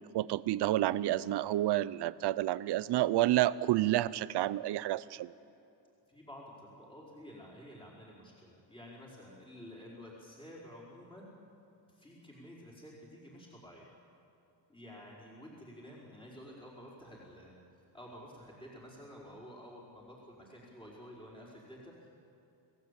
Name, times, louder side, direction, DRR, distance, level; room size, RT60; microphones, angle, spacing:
voice 1, 0.0-5.3, right 15 dB, 65° right, 18 dB, 0.7 m, -30 dB
voice 2, 6.1-11.3 11.9-13.9 14.7-17.5 17.9-22.1, equal, 10° left, -5 dB, 4.8 m, -51 dB
29.5 x 17.5 x 8.4 m, 2.7 s
cardioid pair, 135°, 44 cm